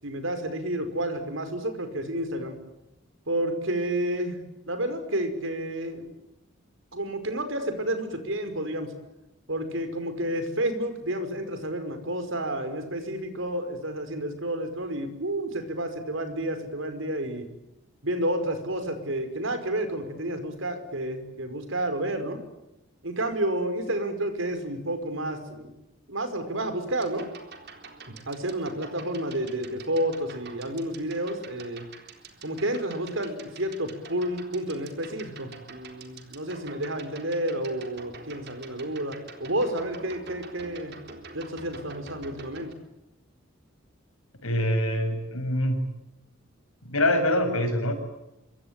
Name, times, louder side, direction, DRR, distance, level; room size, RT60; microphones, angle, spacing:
voice 1, 0.0-2.6 3.3-4.4 4.7-6.2 6.9-8.9 9.5-17.5 18.0-22.4 23.0-25.8 26.1-27.3 28.1-31.8 32.4-40.9 41.3-42.7, right 1 dB, 65° right, 9 dB, 5.3 m, -30 dB
sound 1, 26.9-42.7, right 4 dB, 50° right, 3.9 m, -47 dB
voice 2, 44.4-45.9 46.8-47.9, left 1 dB, 90° left, 6 dB, 7.6 m, -25 dB
26.5 x 23.5 x 9.0 m, 0.91 s
head